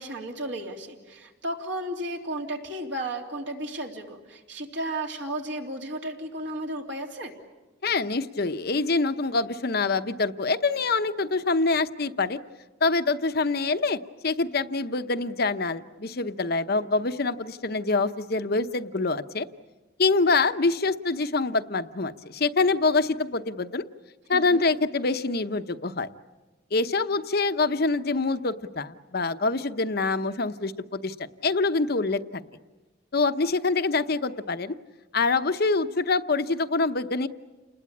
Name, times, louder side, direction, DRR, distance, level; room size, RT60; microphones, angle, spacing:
voice 1, 0.0-7.3 24.3-24.6, right 1 dB, 65° right, 1 dB, 3.1 m, -34 dB
voice 2, 7.8-12.4 12.8-19.5 20.0-23.8 24.3-26.1 26.7-32.4 33.1-34.7 35.1-37.3, left 3 dB, 50° left, 11 dB, 0.9 m, -25 dB
29.0 x 20.5 x 8.6 m, 1.2 s
head